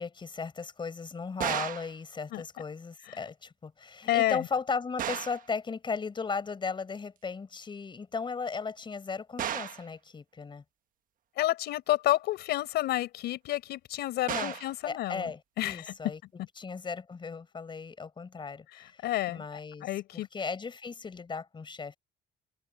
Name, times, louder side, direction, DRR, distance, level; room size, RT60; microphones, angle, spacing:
voice 1, 0.0-10.6 14.3-14.5 14.8-16.2 16.6-19.9 20.1-22.0, left 5 dB, 30° left, 5.0 m, -36 dB
sound 1, 1.4-1.9 5.0-5.5 9.4-9.9 14.3-14.7, right 10 dB, 55° right, 1.2 m, -33 dB
voice 2, 4.0-4.5 11.4-15.3 15.6-15.9 18.7-19.4 19.8-20.3, left 15 dB, 80° left, 4.4 m, -30 dB
cardioid pair, 110°, 17 cm